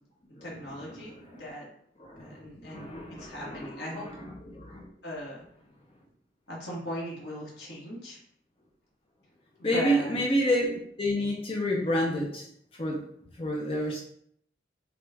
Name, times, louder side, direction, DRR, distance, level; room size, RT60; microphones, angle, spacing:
voice 1, 0.4-1.1 1.4-1.7 2.2-2.9 3.2-4.1 5.0-5.4 6.5-8.2 9.6-10.2, equal, 65° left, -5 dB, 1.4 m, -38 dB
voice 2, 2.1-4.1 4.5-4.9 9.6-12.5 12.7-13.0 13.4-14.0, equal, 30° left, -1 dB, 0.6 m, -29 dB
6.0 x 2.4 x 3.4 m, 0.68 s
head